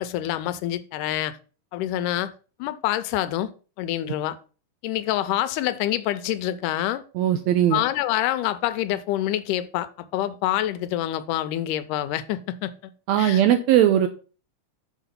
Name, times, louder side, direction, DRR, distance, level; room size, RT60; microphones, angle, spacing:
voice 1, 0.0-1.4 1.7-2.3 2.6-3.5 3.8-4.4 4.8-7.0 7.7-12.9 13.2-13.4, left 13 dB, 85° left, 2.2 m, -26 dB
voice 2, 7.1-7.8 13.1-14.1, right 11 dB, 80° right, 1.6 m, -19 dB
6.3 x 5.1 x 5.3 m
omnidirectional pair, 3.6 m